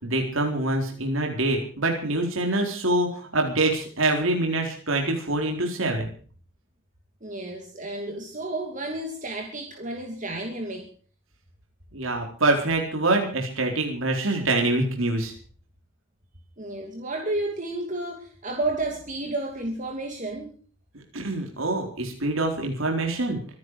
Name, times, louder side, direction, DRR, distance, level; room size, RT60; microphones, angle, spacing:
voice 1, 0.0-6.1 11.9-15.3 21.1-23.4, right 2 dB, 70° right, 2 dB, 4.2 m, -25 dB
voice 2, 7.2-10.9 16.6-20.5, right 2 dB, 35° right, 3 dB, 2.7 m, -31 dB
25.0 x 11.0 x 4.9 m, 0.43 s
head